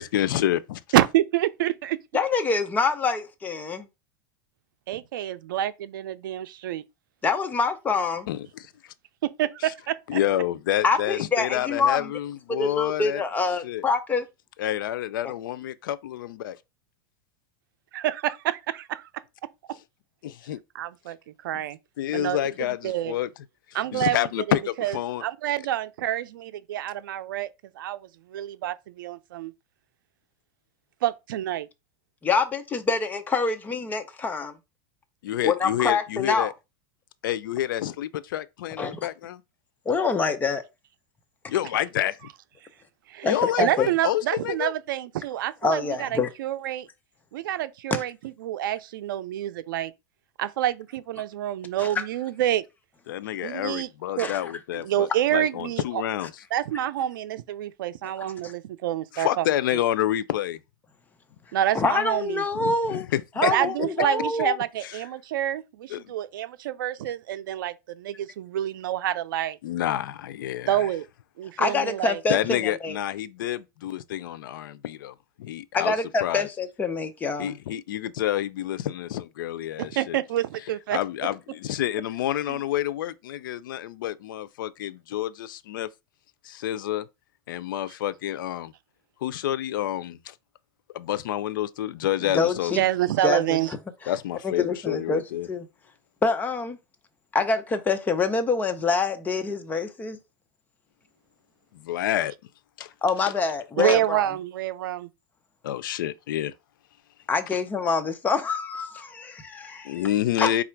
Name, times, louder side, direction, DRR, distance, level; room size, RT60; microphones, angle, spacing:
voice 1, 0.0-0.8 8.3-8.7 9.6-9.7 10.1-13.2 13.6-13.8 14.6-16.6 20.2-20.6 21.5-21.6 22.0-23.3 23.9-25.2 35.2-36.5 37.2-39.4 41.5-42.2 43.3-44.7 53.1-56.4 59.1-60.6 62.5-63.5 63.8-63.9 64.8-65.1 65.9-66.1 69.6-70.9 72.3-75.9 76.2-76.5 77.4-80.2 80.9-85.9 86.4-87.1 87.5-88.7 89.2-90.3 90.9-92.8 94.1-95.5 101.7-102.3 102.8-102.9 103.9-104.0 105.6-106.5 107.5-107.6 109.8-110.6, left 12 dB, 90° left, 0.4 m, -28 dB
voice 2, 0.9-2.0 4.9-6.8 9.2-10.2 17.9-19.1 20.7-21.2 21.4-21.8 22.1-23.1 23.7-24.2 24.5-25.0 25.2-27.5 27.8-28.0 28.3-29.5 31.0-31.7 43.1-43.3 43.6-46.9 47.3-48.1 48.4-49.9 50.4-52.6 53.4-53.9 54.2-54.3 54.8-56.0 56.5-59.5 59.7-59.8 61.5-62.4 63.4-69.6 70.7-71.1 71.4-72.2 79.8-81.0 82.5-82.6 92.8-93.7 103.8-105.1, right 12 dB, 85° right, 0.5 m, -27 dB
voice 3, 2.1-3.9 7.2-8.3 10.8-12.1 12.6-14.3 32.2-34.5 35.4-36.5 38.8-38.9 39.9-40.6 43.2-43.9 45.6-46.3 51.8-51.9 54.2-54.4 58.4-58.5 61.7-63.0 63.4-64.6 71.6-72.9 75.7-77.5 92.3-92.8 93.2-93.6 94.4-95.2 95.5-95.6 96.2-96.8 97.3-100.2 103.0-104.3 107.3-110.0 110.4-110.5, left 4 dB, 15° left, 0.6 m, -25 dB
4.1 x 2.4 x 4.4 m
supercardioid pair, 140°, 11 cm